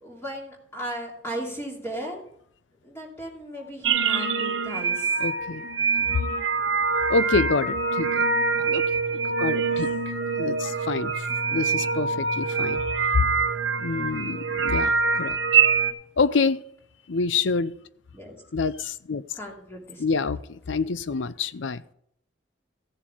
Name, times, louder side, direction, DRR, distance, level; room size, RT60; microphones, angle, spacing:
voice 1, 0.0-2.2 2.8-5.2 9.5-9.6 18.1-18.4 19.3-20.0, right 1 dB, 15° left, 2.7 m, -36 dB
sound 1, 3.8-15.9, right 5 dB, 80° right, 1.0 m, -25 dB
voice 2, 5.2-5.7 6.0-6.1 7.1-8.3 8.6-8.8 9.1-10.1 10.4-12.8 13.1-13.3 13.8-15.4 16.2-16.6 17.1-17.7 18.5-19.2 20.0-21.8, left 4 dB, 80° left, 0.6 m, -27 dB
15.0 x 7.3 x 5.0 m
head